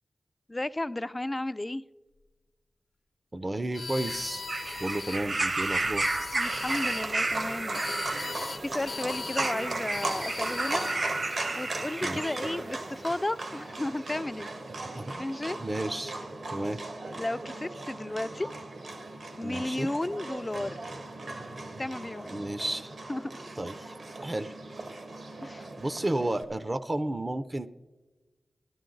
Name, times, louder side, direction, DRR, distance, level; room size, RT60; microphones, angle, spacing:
voice 1, 0.5-1.8 6.3-7.8 8.3-10.8 11.6-14.5 15.2-15.6 17.2-18.5 19.4-20.9 21.8-22.3 23.1-23.4 25.4-25.7, left 1 dB, 30° left, 16 dB, 0.3 m, -33 dB
voice 2, 3.3-4.4 4.8-6.2 12.0-12.4 14.9-15.2 15.6-16.1 16.5-16.8 19.4-19.9 22.3-22.9 23.6-23.9 24.2-24.5 25.8-27.7, right 1 dB, 35° right, 13 dB, 0.5 m, -32 dB
sound 1, 3.7-5.2 5.9-7.1 7.7-8.6 8.9-9.6 9.9-11.0, left 4 dB, 70° left, 0.7 m, -39 dB
sound 2, 4.0-12.6 13.5-13.6, right 2 dB, 55° right, 0.9 m, -32 dB
Livestock farm animals working animals, 6.4-26.4, right 2 dB, 75° right, 1.4 m, -38 dB
12.5 x 12.5 x 3.9 m, 1.2 s
cardioid pair, 55°, 0 cm